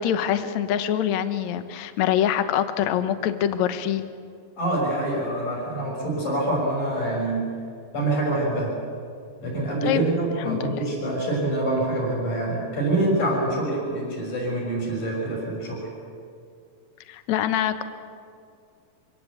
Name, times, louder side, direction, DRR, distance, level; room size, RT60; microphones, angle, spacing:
voice 1, 0.0-4.0 9.8-10.1 10.5-10.8 17.1-17.8, left 10 dB, 70° left, 10 dB, 1.8 m, -24 dB
voice 2, 4.6-7.5 7.9-8.7 9.4-15.9, right 1 dB, 50° left, -2 dB, 7.8 m, -25 dB
26.0 x 17.5 x 8.4 m, 2.3 s
omnidirectional pair, 4.6 m